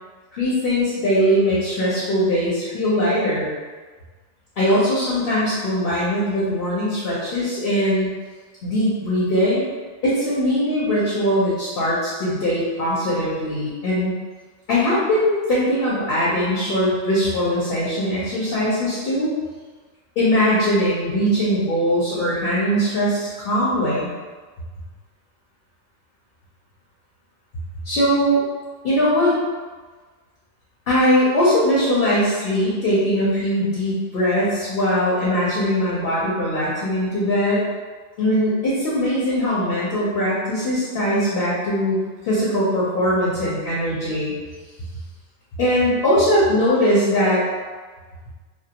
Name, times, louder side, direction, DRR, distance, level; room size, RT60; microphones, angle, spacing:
voice 1, 0.3-3.5 4.6-8.1 8.6-9.6 10.0-14.1 14.7-19.3 20.2-24.1 27.8-28.4 28.8-29.4 30.9-37.7 38.2-44.3 45.6-47.4, equal, 55° left, -8 dB, 0.8 m, -20 dB
2.3 x 2.2 x 2.8 m, 1.4 s
omnidirectional pair, 1.2 m